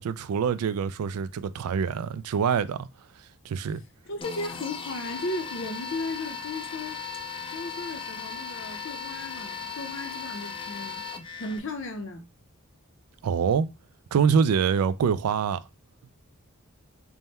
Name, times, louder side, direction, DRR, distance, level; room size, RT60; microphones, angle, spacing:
voice 1, 0.0-2.9 3.5-3.8 13.2-13.7 14.1-15.6, right 6 dB, 85° right, 0.3 m, -25 dB
voice 2, 4.1-7.0 7.5-11.1 11.4-12.3, left 2 dB, 60° left, 0.7 m, -35 dB
sound 1, 4.2-11.6, left 5 dB, 25° left, 0.3 m, -37 dB
3.5 x 2.2 x 4.1 m
head